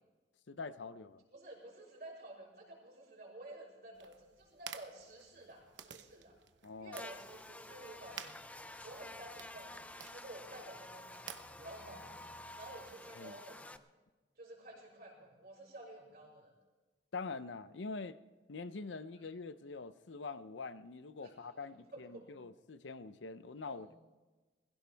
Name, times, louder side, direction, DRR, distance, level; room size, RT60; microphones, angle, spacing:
voice 1, 0.5-1.2 6.6-7.0 13.2-13.4 17.1-18.2 18.5-24.0, left 4 dB, 85° left, 0.7 m, -45 dB
voice 2, 1.3-6.4 6.8-8.3 8.8-13.7 14.4-16.5 21.2-22.3 23.6-24.0, right 1 dB, 50° right, 5.4 m, -52 dB
sound 1, 3.9-12.9, right 8 dB, 85° right, 0.9 m, -54 dB
Buzz, 6.9-13.8, left 1 dB, 10° left, 0.4 m, -50 dB
21.5 x 16.0 x 3.4 m
head